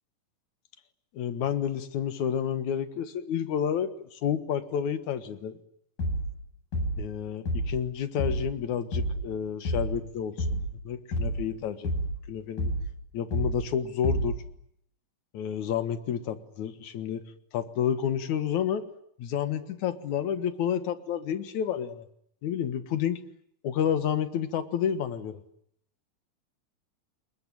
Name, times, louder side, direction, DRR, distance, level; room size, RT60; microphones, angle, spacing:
voice 1, 1.1-5.6 7.0-11.9 12.3-12.7 13.1-14.4 15.3-17.2 17.5-18.9 19.2-22.0 22.4-23.2 23.6-25.4, left 8 dB, 65° left, 11 dB, 2.8 m, -30 dB
sound 1, 6.0-6.4 6.7-7.1 7.5-7.8 8.2-8.6 8.9-9.3 9.7-10.0 10.4-10.8 11.1-11.5 11.8-12.2 12.6-13.0 13.3-13.7 14.0-14.5, equal, 80° left, 9.0 m, -29 dB
28.0 x 22.0 x 9.1 m, 0.71 s
omnidirectional pair, 3.8 m